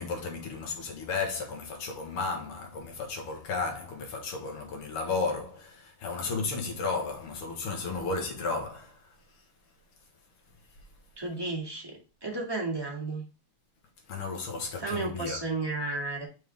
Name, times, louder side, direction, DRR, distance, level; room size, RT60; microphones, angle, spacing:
voice 1, 0.0-9.2 14.1-15.4, left 4 dB, 90° left, 2.4 m, -33 dB
voice 2, 11.2-13.2 14.8-16.3, right 3 dB, 10° right, 2.0 m, -33 dB
5.7 x 5.6 x 3.4 m
omnidirectional pair, 2.4 m